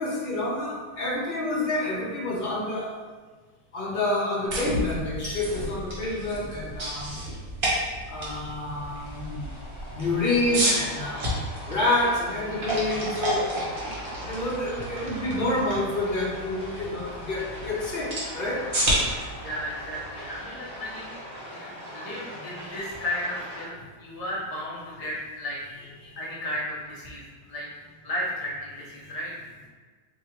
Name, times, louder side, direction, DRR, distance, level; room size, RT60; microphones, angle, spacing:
voice 1, 0.0-2.9 3.7-7.2 8.1-9.5 9.9-11.4 11.7-13.5 14.2-18.6 26.0-26.1, left 2 dB, 45° left, -6 dB, 0.7 m, -28 dB
sound 1, 4.5-10.5, equal, 65° right, 1.0 m, -37 dB
sound 2, 5.1-20.9, right 1 dB, 40° right, 0.9 m, -32 dB
sound 3, 8.7-23.7, equal, 15° left, 1.2 m, -41 dB
voice 2, 19.4-21.1 21.5-25.6 26.2-27.7 28.0-29.3, left 1 dB, 75° left, -6 dB, 0.3 m, -34 dB
2.9 x 2.7 x 4.2 m, 1.4 s
omnidirectional pair, 1.8 m